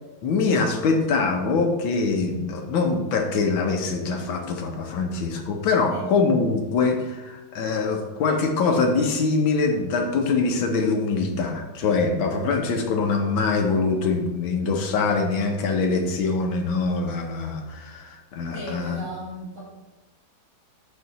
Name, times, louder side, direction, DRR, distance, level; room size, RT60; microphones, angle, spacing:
voice 1, 0.2-19.0, left 4 dB, 90° left, 2 dB, 1.8 m, -23 dB
voice 2, 18.5-19.6, equal, 40° right, -9 dB, 2.4 m, -36 dB
8.6 x 6.8 x 4.1 m, 1.1 s
omnidirectional pair, 2.1 m